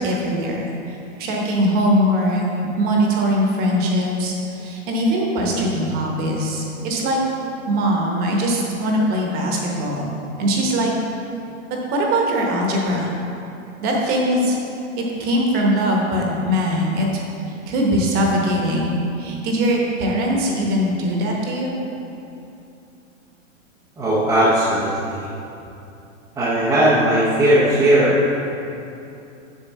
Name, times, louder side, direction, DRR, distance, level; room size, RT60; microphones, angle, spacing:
voice 1, 0.0-7.2 7.7-10.1 10.4-10.9 11.7-13.1 13.8-14.6 15.0-17.2 17.5-21.7, equal, 25° right, -1 dB, 1.0 m, -21 dB
voice 2, 24.0-25.3 26.4-28.3, right 1 dB, 10° right, -9 dB, 0.5 m, -18 dB
7.3 x 6.4 x 4.2 m, 2.8 s
supercardioid pair, 160°, 39 cm